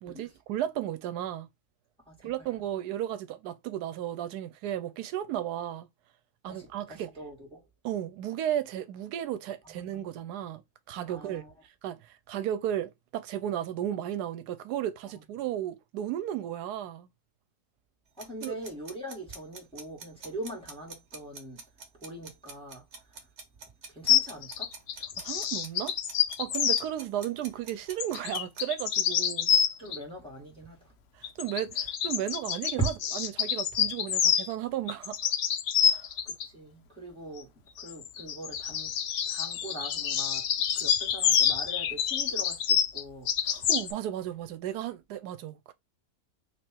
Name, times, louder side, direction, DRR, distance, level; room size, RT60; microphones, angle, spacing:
voice 1, 0.0-1.5 2.2-5.9 6.4-7.1 7.8-10.6 10.9-11.4 11.8-17.1 18.4-18.6 25.2-25.9 26.4-29.6 31.1-35.2 35.8-36.1 43.5-45.7, right 11 dB, 85° right, 1.1 m, -34 dB
voice 2, 6.4-7.6 9.6-10.0 11.1-11.5 18.2-21.6 21.9-22.8 23.9-24.7 29.8-30.9 32.8-32.9 36.3-38.9 39.3-40.5 40.7-43.3 43.6-43.7, right 2 dB, 5° left, 2.1 m, -41 dB
sound 1, 18.2-28.6, right 4 dB, 50° right, 1.2 m, -45 dB
sound 2, 24.1-26.8 28.0-30.0 31.2-34.5 34.9-36.5 37.8-43.9, left 9 dB, 70° left, 0.6 m, -27 dB
3.3 x 2.9 x 4.4 m
omnidirectional pair, 1.7 m